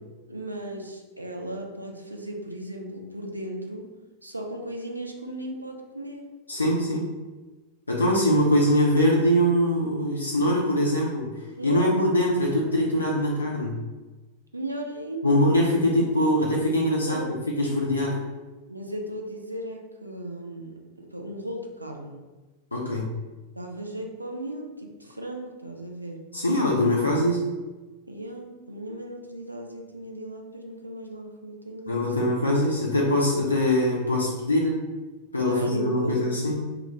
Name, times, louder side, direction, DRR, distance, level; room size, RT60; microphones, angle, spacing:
voice 1, 0.3-3.9 4.2-6.3 11.6-12.0 14.5-15.4 17.0-17.4 18.7-22.2 23.5-26.2 28.1-32.3 35.4-36.2, right 1 dB, 85° right, 2 dB, 0.3 m, -36 dB
voice 2, 6.5-7.1 7.9-11.3 11.6-13.8 15.2-18.2 22.7-23.1 26.3-27.5 31.9-34.9 35.3-36.7, left 1 dB, 80° left, -4 dB, 0.4 m, -23 dB
2.2 x 2.2 x 2.9 m, 1.2 s
figure-of-eight pair, 90°, 0 cm